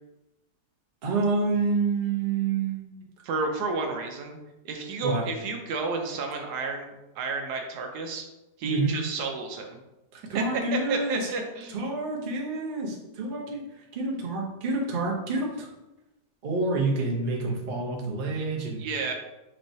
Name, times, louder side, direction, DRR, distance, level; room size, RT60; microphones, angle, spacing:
voice 1, 1.0-2.9 5.0-5.2 8.6-9.0 10.1-11.3 11.7-15.7 16.4-18.8, right 3 dB, 45° right, -2 dB, 0.7 m, -28 dB
voice 2, 3.2-4.4 4.6-8.3 8.6-9.8 10.3-10.4 10.7-11.8 18.3-18.5 18.8-19.1, right 4 dB, 75° right, 3 dB, 1.1 m, -31 dB
4.4 x 3.2 x 2.7 m, 0.99 s
omnidirectional pair, 1.7 m